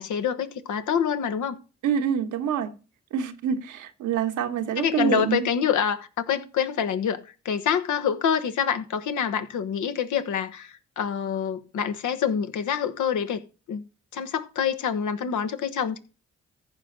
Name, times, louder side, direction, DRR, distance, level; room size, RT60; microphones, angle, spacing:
voice 1, 0.0-1.6 4.8-7.2 7.4-13.4 13.7-13.8 14.1-16.0, left 7 dB, 80° left, 1.3 m, -26 dB
voice 2, 1.8-2.7 3.1-5.4, right 8 dB, 85° right, 1.3 m, -26 dB
15.0 x 5.7 x 3.8 m
hypercardioid pair, 40°, 30 cm